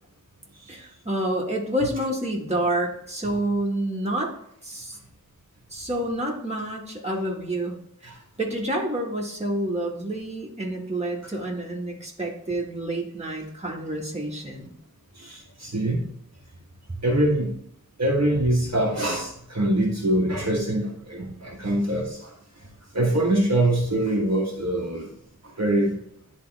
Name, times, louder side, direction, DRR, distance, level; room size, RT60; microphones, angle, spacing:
voice 1, 0.7-4.3 4.6-5.0 5.7-7.8 8.0-14.7, right 1 dB, 20° right, -2 dB, 1.9 m, -28 dB
voice 2, 15.1-16.1 17.0-17.5 18.0-22.3 22.6-22.7 22.9-25.1 25.4-26.0, right 1 dB, 50° right, -2 dB, 1.4 m, -24 dB
10.5 x 3.5 x 3.5 m, 0.71 s
wide cardioid pair, 65°, 33 cm